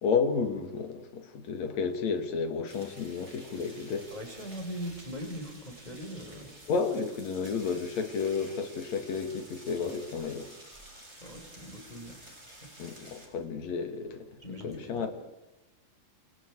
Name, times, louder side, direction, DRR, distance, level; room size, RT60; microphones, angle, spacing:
voice 1, 0.0-4.1 6.7-10.5 12.8-14.3 14.6-15.1, left 5 dB, 50° left, 3.1 m, -31 dB
sound 1, 2.7-13.3, right 1 dB, 15° right, 6.2 m, -51 dB
voice 2, 4.1-6.5 11.2-12.7 14.4-15.1, equal, 10° left, 4.2 m, -41 dB
29.5 x 29.0 x 4.8 m
omnidirectional pair, 4.4 m